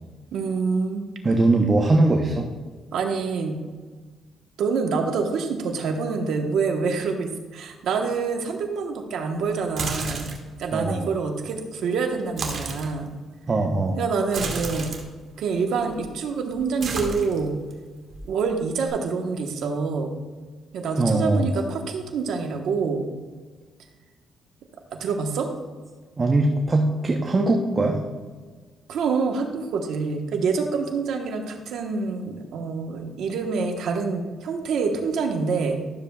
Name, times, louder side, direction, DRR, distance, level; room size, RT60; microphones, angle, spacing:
voice 1, 0.3-1.1 2.9-3.6 4.6-10.3 10.6-13.1 14.0-14.9 15.4-17.6 18.2-20.2 20.7-23.1 24.9-25.5 28.9-35.8, right 5 dB, 75° right, 4 dB, 1.1 m, -26 dB
voice 2, 1.2-2.5 10.7-11.1 13.5-14.0 21.0-21.5 26.2-28.0, right 2 dB, 30° right, 2 dB, 0.8 m, -21 dB
sound 1, 9.6-10.5 12.2-12.9 14.3-15.0 15.8-16.2 16.5-17.7 18.1-18.9, right 4 dB, 55° right, 1.5 m, -32 dB
12.5 x 6.9 x 2.3 m, 1.4 s
cardioid pair, 90°, 0 cm